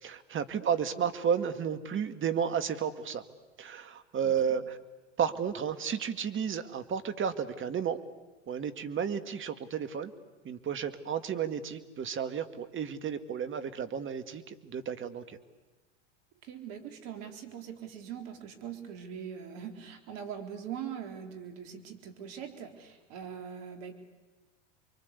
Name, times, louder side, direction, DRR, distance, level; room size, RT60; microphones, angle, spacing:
voice 1, 0.0-3.2 3.6-4.8 5.2-8.0 8.5-10.1 10.4-15.4, right 7 dB, 30° right, 10 dB, 2.1 m, -32 dB
voice 2, 4.2-4.5 16.4-23.9, right 8 dB, 60° right, 6 dB, 3.9 m, -42 dB
29.0 x 23.5 x 8.4 m, 1.1 s
hypercardioid pair, 90°, 37 cm